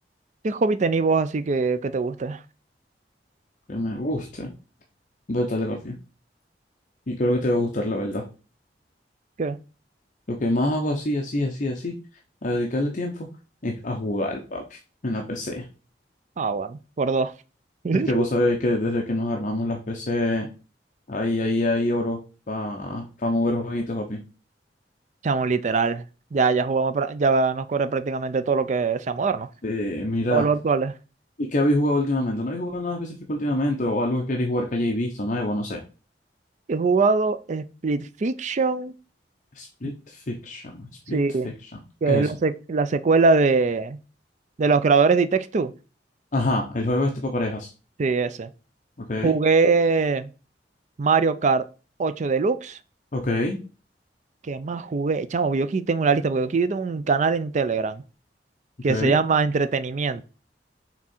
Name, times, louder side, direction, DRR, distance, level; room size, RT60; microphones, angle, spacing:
voice 1, 0.4-2.4 9.4-9.6 16.4-17.3 17.8-18.2 25.2-26.0 26.3-29.5 30.3-30.9 36.7-38.9 39.8-39.9 41.1-41.5 42.0-44.0 44.6-45.7 48.0-48.5 49.2-50.3 51.0-51.7 52.0-52.8 54.5-58.0 58.8-60.2, right 4 dB, 45° right, 0.4 m, -22 dB
voice 2, 3.7-4.5 5.3-6.0 7.1-8.2 10.3-12.0 12.4-13.3 13.6-15.7 17.9-20.5 21.1-22.2 22.5-24.2 29.6-30.4 31.4-35.8 39.5-41.2 41.4-41.8 42.1-42.3 46.3-47.7 49.0-49.4 53.1-53.6 58.9-59.2, left 1 dB, 45° left, 0.8 m, -26 dB
6.0 x 3.7 x 4.3 m
head